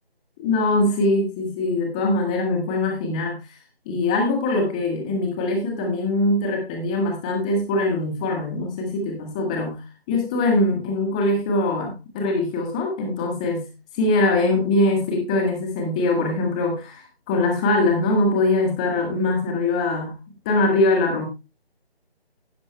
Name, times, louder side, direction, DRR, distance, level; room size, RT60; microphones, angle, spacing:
voice 1, 0.4-3.4 3.9-13.7 14.0-20.2 20.4-21.2, left 2 dB, 5° left, 2 dB, 1.1 m, -22 dB
16.0 x 5.9 x 3.1 m, 0.27 s
figure-of-eight pair, 155°, 31 cm